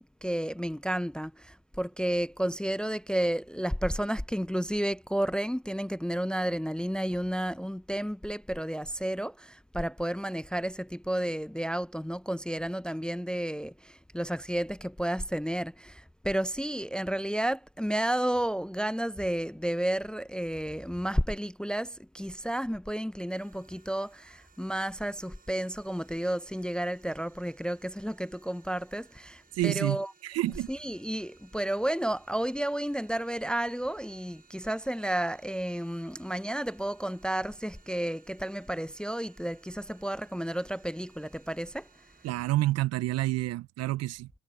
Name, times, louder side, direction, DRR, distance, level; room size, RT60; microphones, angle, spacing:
voice 1, 0.2-30.1 30.7-41.9, right 1 dB, 5° left, 0.4 m, -32 dB
sound 1, 23.3-42.5, right 5 dB, 30° right, 6.3 m, -62 dB
voice 2, 29.5-30.7 42.2-44.3, right 16 dB, 55° right, 0.5 m, -29 dB
cardioid pair, 100°, 31 cm